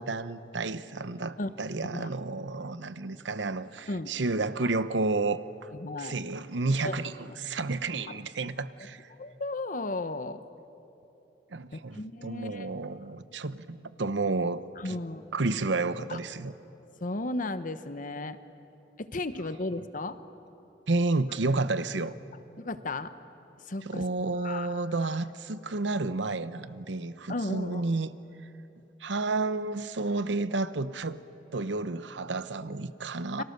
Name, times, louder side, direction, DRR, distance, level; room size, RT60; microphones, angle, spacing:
voice 1, 0.0-5.7 6.0-9.1 11.5-15.0 15.3-16.5 20.9-22.1 23.9-28.1 29.0-31.2 31.5-33.4, right 3 dB, 90° right, 0.9 m, -31 dB
voice 2, 5.7-6.1 6.8-6.9 8.1-8.2 9.1-10.4 11.7-12.7 14.8-15.2 16.1-16.2 17.0-18.4 19.0-20.2 22.6-23.1 23.6-24.0 24.4-24.9 27.3-27.8 33.4-33.5, left 2 dB, 50° left, 1.0 m, -34 dB
30.0 x 24.5 x 6.7 m
head